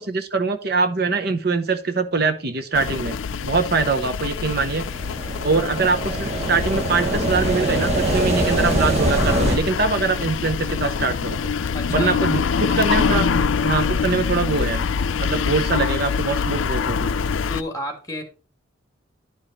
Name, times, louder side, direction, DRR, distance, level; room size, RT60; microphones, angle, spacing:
voice 1, 0.0-3.2 3.4-4.8 5.4-11.4 11.9-14.8 15.2-17.1, right 4 dB, 50° right, 0.8 m, -23 dB
sound 1, 2.7-17.6, left 5 dB, 80° left, 0.4 m, -25 dB
sound 2, 4.3-9.6, right 1 dB, 35° right, 1.5 m, -23 dB
voice 2, 11.7-12.4 17.5-18.2, left 1 dB, 15° left, 2.2 m, -31 dB
11.5 x 5.0 x 4.1 m
head